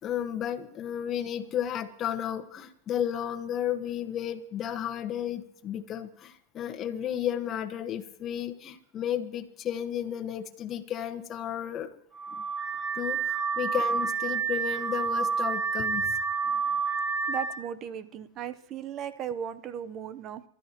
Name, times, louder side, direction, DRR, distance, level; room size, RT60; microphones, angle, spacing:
voice 1, 0.0-11.9 13.0-16.1, left 10 dB, 35° left, 5 dB, 1.4 m, -33 dB
Car / Alarm, 12.2-17.6, right 5 dB, 20° right, 1.2 m, -29 dB
voice 2, 17.3-20.4, right 8 dB, 40° right, 12 dB, 0.9 m, -36 dB
27.0 x 12.5 x 3.1 m, 0.72 s
supercardioid pair, 120°, 0 cm